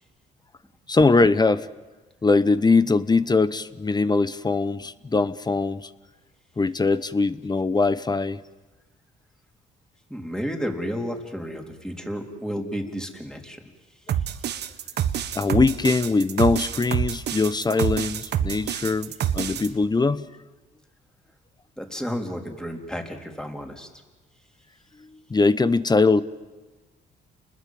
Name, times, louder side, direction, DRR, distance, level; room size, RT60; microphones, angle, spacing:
voice 1, 0.9-1.7 2.2-5.9 6.6-8.4 15.3-20.3 25.3-26.2, left 3 dB, 20° left, 15 dB, 0.9 m, -21 dB
voice 2, 10.1-13.6 21.8-23.9, equal, 5° left, 3 dB, 3.9 m, -32 dB
sound 1, 14.1-19.7, right 10 dB, 65° right, 1.4 m, -27 dB
29.0 x 20.5 x 7.7 m, 1.2 s
cardioid pair, 80°, 19 cm